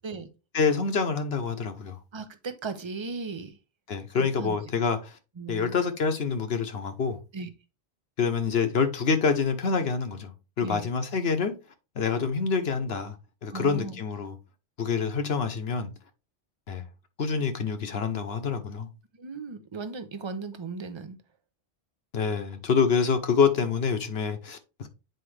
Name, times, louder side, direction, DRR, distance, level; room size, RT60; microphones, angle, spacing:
voice 1, 0.5-2.0 3.9-5.2 5.5-7.2 8.2-11.5 12.0-13.2 13.4-14.4 14.8-15.9 16.7-16.9 17.2-18.9 22.1-24.9, left 5 dB, 70° left, 1.1 m, -26 dB
voice 2, 2.1-3.6 4.1-4.6 5.4-5.8 7.3-7.5 10.6-10.9 13.5-14.0 19.2-21.2, right 4 dB, 30° right, 0.7 m, -37 dB
7.8 x 4.8 x 3.2 m
omnidirectional pair, 1.1 m